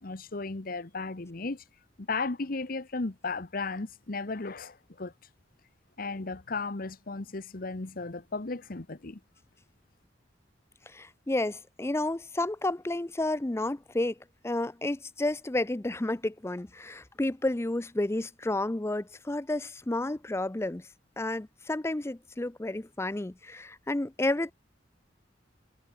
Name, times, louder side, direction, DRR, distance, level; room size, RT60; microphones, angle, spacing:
voice 1, 0.0-1.6 2.0-5.1 6.0-9.2, left 3 dB, 50° left, 1.1 m, -35 dB
voice 2, 10.9-14.2 14.4-20.9 21.2-24.5, left 2 dB, 15° left, 0.5 m, -31 dB
head